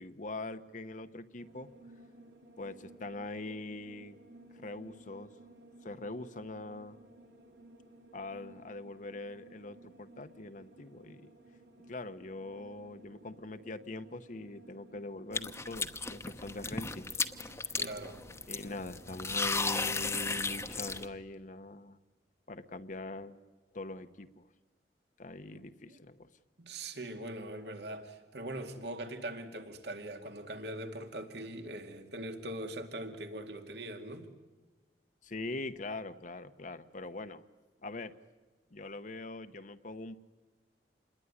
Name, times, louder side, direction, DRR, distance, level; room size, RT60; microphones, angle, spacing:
voice 1, 0.0-1.7 2.6-4.2 4.5-5.3 5.8-7.0 8.1-11.3 11.9-17.1 17.5-17.7 18.5-22.0 22.5-23.4 23.7-24.5 25.2-26.3 35.2-37.4 37.8-38.2 38.7-40.2, left 2 dB, 45° left, 0.9 m, -43 dB
sound 1, 1.4-20.7, right 1 dB, 85° right, 3.3 m, -57 dB
sound 2, 15.3-21.1, left 4 dB, 15° left, 1.0 m, -35 dB
voice 2, 17.8-18.2 25.5-26.0 26.6-34.3, right 1 dB, 70° right, 2.3 m, -42 dB
27.5 x 21.0 x 10.0 m
head